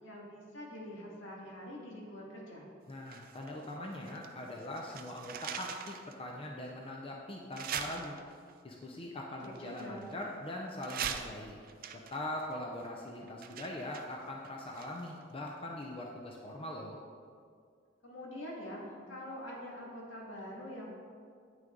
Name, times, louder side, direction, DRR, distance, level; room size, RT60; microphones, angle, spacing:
voice 1, 0.0-2.7 9.4-10.1 18.0-20.9, left 1 dB, 75° left, -3 dB, 2.0 m, -45 dB
voice 2, 2.9-8.2 8.6-11.6 11.9-17.0, left 1 dB, 30° left, 0 dB, 0.6 m, -42 dB
sound 1, 3.1-4.3 4.6-6.1 6.6-6.7 7.5-8.5 9.4-10.4 10.8-15.2 15.5-15.6, right 8 dB, 50° right, 0.5 m, -42 dB
9.1 x 6.2 x 3.8 m, 2.2 s
head